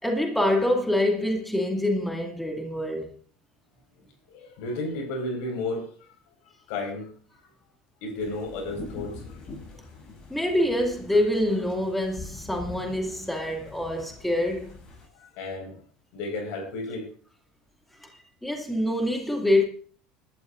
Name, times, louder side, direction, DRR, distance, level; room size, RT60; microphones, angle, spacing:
voice 1, 0.0-3.1 10.3-14.8 18.0-18.1 18.4-19.6, left 1 dB, 5° left, 2.4 m, -25 dB
voice 2, 4.3-6.0 6.7-7.2 8.0-9.4 15.1-15.8 16.1-17.1, left 2 dB, 70° left, 4.9 m, -33 dB
sound 1, 8.2-15.1, left 3 dB, 40° left, 8.0 m, -44 dB
21.0 x 12.5 x 2.6 m
supercardioid pair, 90°, 2 cm